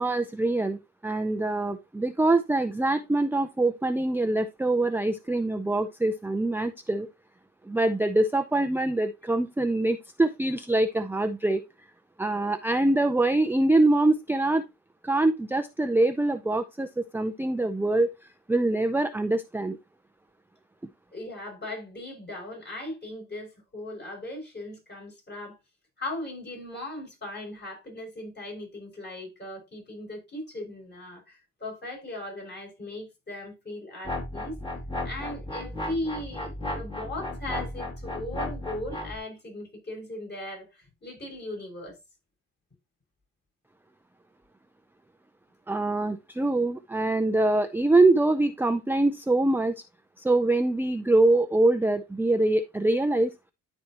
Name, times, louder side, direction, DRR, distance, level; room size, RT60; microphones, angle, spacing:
voice 1, 0.0-7.1 7.7-11.6 12.2-14.6 15.0-18.1 18.5-19.8 45.7-49.7 50.2-53.3, right 2 dB, 5° right, 0.5 m, -24 dB
voice 2, 21.1-25.6 26.0-34.6 35.0-42.0, left 1 dB, 35° left, 5.9 m, -38 dB
sound 1, 34.0-39.2, left 1 dB, 15° left, 2.5 m, -34 dB
13.0 x 4.4 x 2.9 m
cardioid pair, 95°, 31 cm